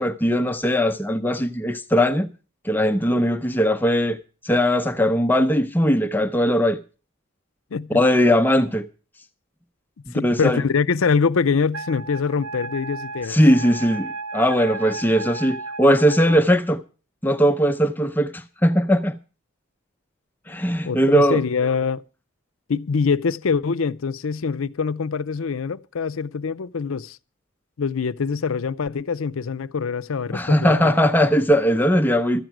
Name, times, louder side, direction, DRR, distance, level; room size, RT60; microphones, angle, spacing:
voice 1, 0.0-2.3 2.6-4.2 4.4-6.8 7.9-8.8 10.1-10.6 13.3-16.8 17.2-19.1 20.5-21.4 30.3-32.4, equal, 10° left, 0.6 m, -19 dB
voice 2, 10.1-13.4 20.8-22.0 22.7-27.2 27.8-30.9, left 5 dB, 85° left, 0.5 m, -24 dB
Wind instrument woodwind instrument, 11.7-16.5, right 3 dB, 85° right, 0.8 m, -34 dB
13.0 x 9.1 x 6.0 m
head